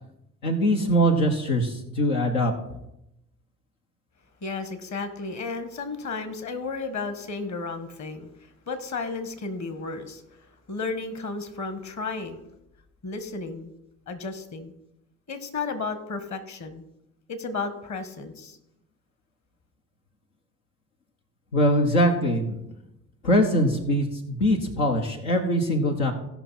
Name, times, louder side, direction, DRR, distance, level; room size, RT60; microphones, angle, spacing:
voice 1, 0.4-2.5 21.5-22.6 23.2-26.1, equal, 80° left, 2 dB, 1.2 m, -22 dB
voice 2, 4.4-8.3 8.7-10.2 10.7-12.4 13.0-13.7 14.1-14.7 15.3-16.8 17.3-18.6, left 4 dB, 40° left, 9 dB, 1.7 m, -33 dB
17.0 x 5.8 x 4.2 m, 0.85 s
figure-of-eight pair, 50°, 43 cm